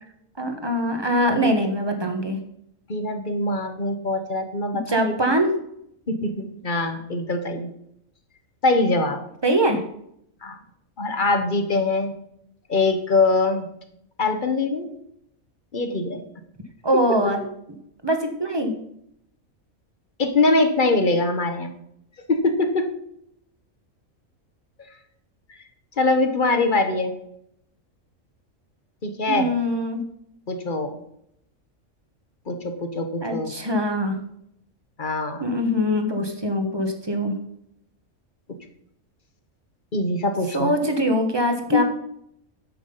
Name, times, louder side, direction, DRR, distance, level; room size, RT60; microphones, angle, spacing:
voice 1, 0.4-2.4 4.9-5.5 9.4-9.8 16.8-17.4 18.0-18.7 29.3-30.0 33.2-34.2 35.4-37.4 40.5-41.8, equal, 20° right, 5 dB, 1.4 m, -23 dB
voice 2, 2.9-5.1 6.1-7.7 8.6-9.2 10.4-10.6 11.0-12.1 12.7-13.7 14.2-14.9 15.7-16.2 20.2-21.7 22.3-22.9 26.0-27.1 29.0-29.5 30.5-30.9 32.5-33.5 35.0-35.4 39.9-40.7 41.7-41.8, left 2 dB, 40° left, 6 dB, 1.3 m, -23 dB
10.5 x 7.6 x 5.5 m, 0.74 s
omnidirectional pair, 1.4 m